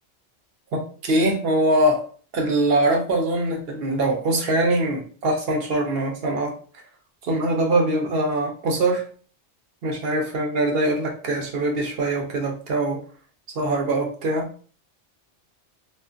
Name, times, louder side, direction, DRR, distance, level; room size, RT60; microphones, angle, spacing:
voice 1, 0.7-2.0 2.3-6.5 7.2-9.0 9.8-13.0 13.6-14.5, right 1 dB, 60° right, 1 dB, 0.8 m, -23 dB
2.4 x 2.4 x 2.4 m, 0.42 s
omnidirectional pair, 1.2 m